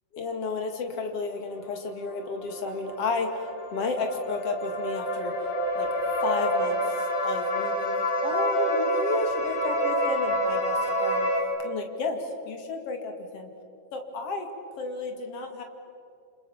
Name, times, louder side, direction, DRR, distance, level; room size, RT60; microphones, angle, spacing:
voice 1, 0.1-5.3 5.7-5.9 6.2-6.8 7.2-11.3 11.6-13.5 13.9-14.5 14.8-15.6, left 4 dB, 45° left, 4 dB, 2.0 m, -32 dB
sound 1, 2.1-11.4, equal, 30° left, 2.7 m, -28 dB
29.5 x 27.0 x 7.2 m, 2.4 s
omnidirectional pair, 5.8 m